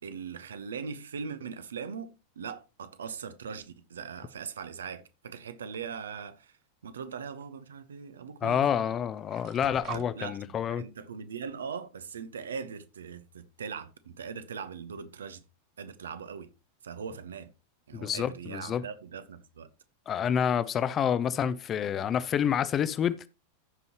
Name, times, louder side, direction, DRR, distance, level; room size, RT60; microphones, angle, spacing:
voice 1, 0.0-6.6 6.8-9.0 9.9-15.4 15.8-16.5 16.8-17.5 17.9-19.7, right 6 dB, 65° right, 0.9 m, -40 dB
sound 1, 5.7-6.3 7.4-7.5 8.4-8.6 8.8-10.1, right 14 dB, 40° right, 0.5 m, -44 dB
voice 2, 8.4-10.8 18.0-18.8 20.1-23.3, left 8 dB, 25° left, 0.6 m, -28 dB
15.0 x 5.4 x 3.0 m
figure-of-eight pair, 90°, 0 cm